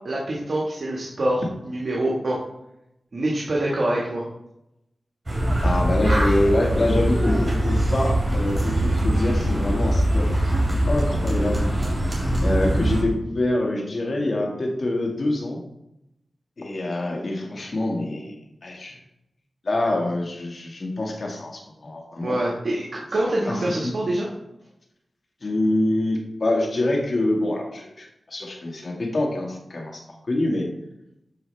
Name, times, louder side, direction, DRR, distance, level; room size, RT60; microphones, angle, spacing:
voice 1, 0.0-2.4 3.1-4.2 22.2-24.3, right 1 dB, 60° right, -4 dB, 1.5 m, -25 dB
sound 1, 5.3-13.0, right 1 dB, 30° right, 2.9 m, -22 dB
voice 2, 5.6-10.3 10.9-11.7 12.4-15.6 16.6-18.3 18.6-19.0 19.6-22.4 23.5-23.9 25.4-30.0 30.3-30.7, left 1 dB, 60° left, 0 dB, 1.8 m, -25 dB
12.5 x 4.9 x 3.3 m, 0.87 s
wide cardioid pair, 65°, 0 cm